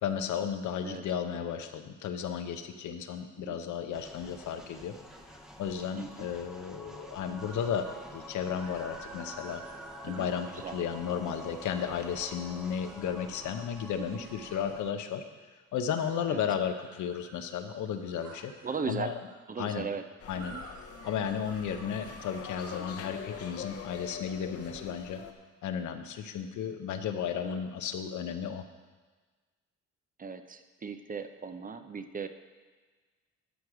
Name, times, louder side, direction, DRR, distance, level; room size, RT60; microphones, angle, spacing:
voice 1, 0.0-4.9 5.6-9.6 10.0-15.2 15.7-18.5 18.9-19.1 19.6-19.9 20.3-20.6 21.0-25.2 25.6-28.6, left 8 dB, 75° left, 7 dB, 0.8 m, -34 dB
sound 1, 3.9-14.9, equal, ahead, 0.9 m, -48 dB
sound 2, 7.4-8.1 8.6-11.4 12.1-14.8 16.0-19.4 20.4-23.5, right 2 dB, 75° right, 1.4 m, -52 dB
voice 2, 10.1-10.7 14.0-14.2 16.3-16.4 18.6-19.2 19.5-20.0 20.4-20.6 27.4-27.6 30.2-32.3, right 5 dB, 30° right, 9 dB, 0.6 m, -38 dB
sound 3, 20.2-25.3, left 6 dB, 50° left, 0.9 m, -43 dB
12.0 x 4.7 x 4.9 m, 1.4 s
cardioid pair, 90°, 30 cm